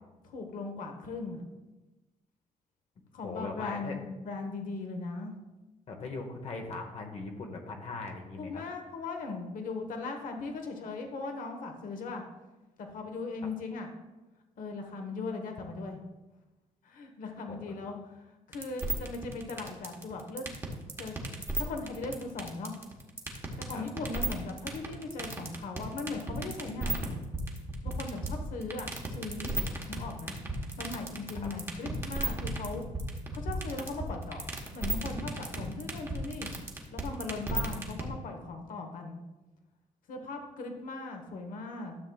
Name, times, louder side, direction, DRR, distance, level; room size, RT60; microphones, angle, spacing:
voice 1, 0.2-1.4 3.1-5.3 8.4-12.2 12.8-13.9 14.6-16.0 16.8-18.2 18.5-20.5 21.0-21.2 21.6-22.7 23.6-27.1 27.8-28.9 29.1-29.6 29.9-30.3 30.8-32.9 33.3-36.5 36.9-39.2 40.1-42.0, left 3 dB, 70° left, 4 dB, 1.1 m, -38 dB
voice 2, 3.2-3.9 5.9-8.6 17.5-17.8 23.7-23.8 31.4-31.5, left 3 dB, 50° left, 3 dB, 0.9 m, -40 dB
sound 1, 18.5-38.1, right 2 dB, 20° right, 1.1 m, -34 dB
12.5 x 7.1 x 2.3 m, 1.1 s
cardioid pair, 165°, 14 cm